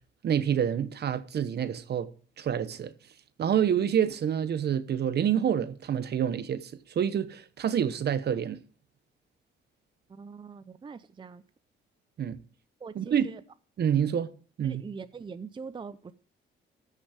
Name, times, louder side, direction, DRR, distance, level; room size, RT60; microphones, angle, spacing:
voice 1, 0.2-2.1 2.4-2.9 3.4-8.6 12.2-12.4 12.9-13.3 13.8-14.3 14.6-14.8, right 9 dB, 55° right, 1.0 m, -27 dB
voice 2, 10.1-11.4 12.8-13.4 14.6-16.1, right 5 dB, 25° right, 0.5 m, -42 dB
14.5 x 6.4 x 5.0 m
cardioid pair, 90°, 20 cm